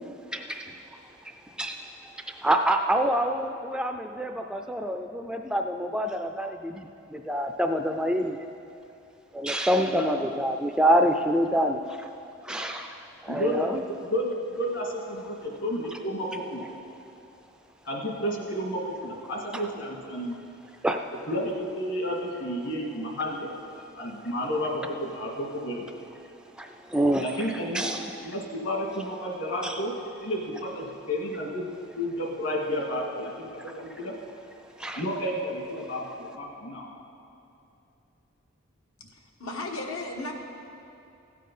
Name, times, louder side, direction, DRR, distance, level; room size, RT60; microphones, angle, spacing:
voice 1, 0.3-0.7 1.6-1.9 2.3-8.4 9.3-12.0 12.4-13.8 20.8-21.0 26.6-27.2 27.7-28.1 29.6-29.8 34.8-35.0, equal, 5° right, 5 dB, 0.3 m, -26 dB
voice 2, 9.9-10.3 13.3-16.7 17.9-20.4 21.3-23.5 23.9-25.9 27.2-27.9 28.2-29.9 30.2-34.1 35.0-36.9, equal, 60° left, -1 dB, 2.0 m, -31 dB
voice 3, 39.1-40.3, left 2 dB, 85° left, 0 dB, 1.4 m, -35 dB
15.5 x 7.5 x 5.4 m, 2.7 s
head